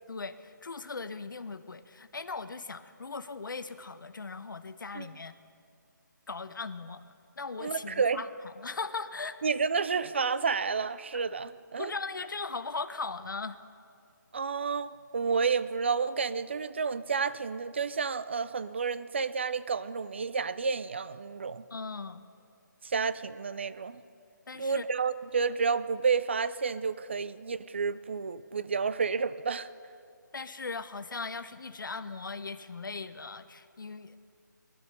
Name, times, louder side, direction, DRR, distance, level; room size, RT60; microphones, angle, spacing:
voice 1, 0.1-5.3 6.3-7.0 7.4-9.4 11.8-13.6 21.7-22.3 24.5-24.9 30.3-34.2, left 4 dB, 80° left, 0.9 m, -38 dB
voice 2, 7.6-8.2 9.4-11.9 14.3-21.6 22.8-24.0 24.6-29.7, right 5 dB, 35° right, 0.4 m, -30 dB
20.0 x 12.0 x 5.4 m
hypercardioid pair, 170°, 11 cm